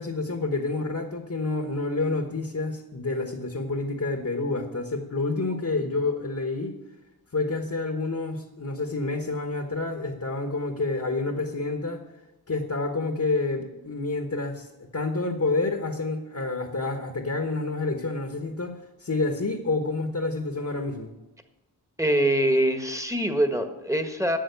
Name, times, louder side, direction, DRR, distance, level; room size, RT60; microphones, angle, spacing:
voice 1, 0.0-6.8 7.3-12.0 12.5-14.7 14.9-21.1, left 3 dB, 45° left, 5 dB, 1.3 m, -28 dB
voice 2, 22.0-24.4, right 1 dB, 10° right, 6 dB, 1.4 m, -24 dB
11.5 x 7.3 x 7.0 m, 0.99 s
wide cardioid pair, 40°, 40 cm